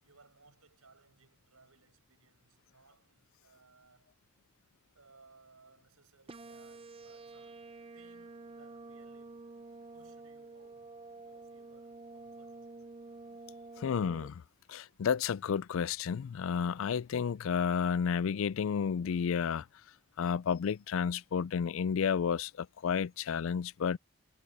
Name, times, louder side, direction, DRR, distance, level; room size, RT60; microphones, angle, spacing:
voice 1, 0.0-4.1 4.9-7.7 7.9-9.5 9.9-12.9, right 3 dB, 90° right, 6.7 m, -63 dB
sound 1, 6.3-14.3, right 3 dB, 25° right, 0.6 m, -49 dB
voice 2, 13.8-14.4 14.7-19.6 20.2-24.0, left 7 dB, 65° left, 0.3 m, -31 dB
head